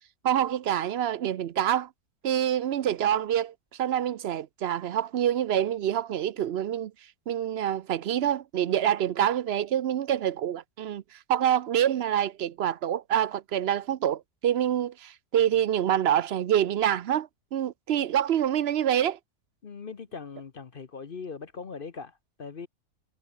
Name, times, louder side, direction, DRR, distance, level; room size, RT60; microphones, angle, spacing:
voice 1, 0.2-1.9 2.2-6.9 7.3-11.0 11.3-19.2, right 10 dB, 60° right, 0.7 m, -26 dB
voice 2, 19.6-22.7, left 5 dB, 40° left, 1.0 m, -40 dB
omnidirectional pair, 1.6 m